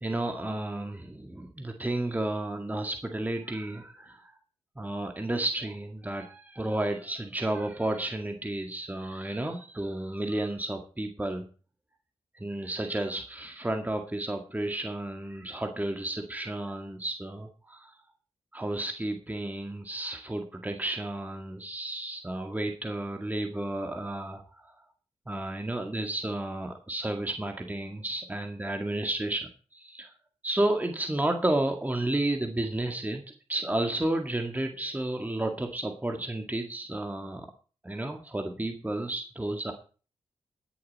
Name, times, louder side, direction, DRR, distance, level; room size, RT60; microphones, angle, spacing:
voice 1, 0.0-4.3 4.8-11.5 12.4-17.9 18.5-24.7 25.3-30.1 30.4-33.2 33.5-37.5 37.8-39.7, right 1 dB, 15° right, 4 dB, 2.0 m, -32 dB
19.5 x 7.1 x 4.2 m, 0.38 s
supercardioid pair, 45°, 11 cm